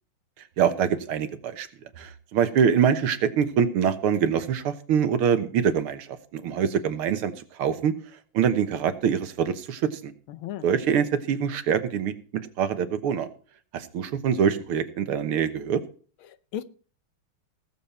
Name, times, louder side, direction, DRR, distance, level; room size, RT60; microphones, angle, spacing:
voice 1, 0.6-1.7 2.0-7.9 8.3-10.1 10.6-12.1 12.6-13.3 13.7-15.8, right 7 dB, 80° right, 2.1 m, -24 dB
voice 2, 10.3-10.7 16.2-16.6, left 11 dB, 75° left, 1.6 m, -36 dB
19.0 x 7.4 x 4.3 m
omnidirectional pair, 2.3 m